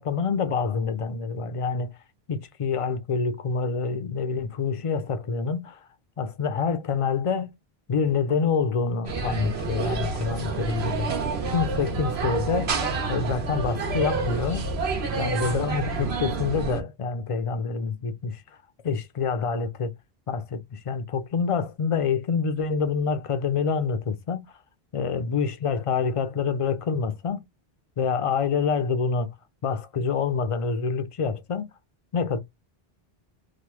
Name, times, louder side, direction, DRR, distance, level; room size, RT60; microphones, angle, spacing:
voice 1, 0.0-1.9 2.3-5.8 6.2-7.5 7.9-11.1 11.5-14.7 15.1-18.4 18.8-19.9 20.3-24.4 24.9-27.4 28.0-29.3 29.6-31.7 32.1-32.4, left 5 dB, 55° left, 0.3 m, -27 dB
sound 1, 9.0-16.8, right 4 dB, 90° right, 1.2 m, -28 dB
3.0 x 2.1 x 3.0 m
omnidirectional pair, 1.0 m